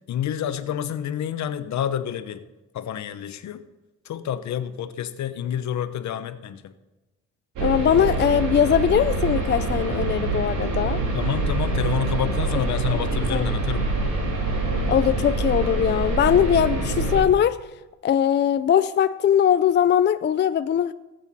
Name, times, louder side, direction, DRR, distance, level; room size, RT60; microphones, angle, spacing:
voice 1, 0.1-2.4 2.7-3.6 4.0-6.6 11.1-13.9 16.2-16.3, left 9 dB, 70° left, 10 dB, 1.0 m, -28 dB
voice 2, 7.6-11.0 12.9-13.0 13.3-13.5 14.9-17.6 18.0-20.9, left 9 dB, 35° left, 12 dB, 0.4 m, -20 dB
sound 1, 7.6-17.2, right 3 dB, 80° right, 2.7 m, -25 dB
18.0 x 8.1 x 4.2 m, 1.1 s
cardioid pair, 90°, 30 cm